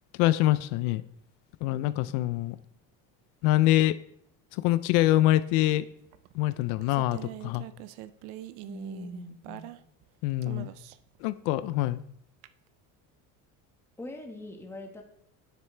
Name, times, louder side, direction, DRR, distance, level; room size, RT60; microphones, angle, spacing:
voice 1, 0.2-1.0 1.6-2.6 3.4-4.0 4.5-5.9 6.3-7.6 10.2-10.7 11.2-12.0, left 15 dB, 80° left, 15 dB, 0.5 m, -25 dB
sound 1, 6.1-10.1 10.4-11.2 12.4-12.5, right 15 dB, 75° right, 0.6 m, -43 dB
voice 2, 8.7-9.8 14.0-15.0, left 1 dB, 5° left, 2 dB, 1.5 m, -42 dB
10.0 x 7.5 x 3.3 m, 0.69 s
cardioid pair, 125°, 39 cm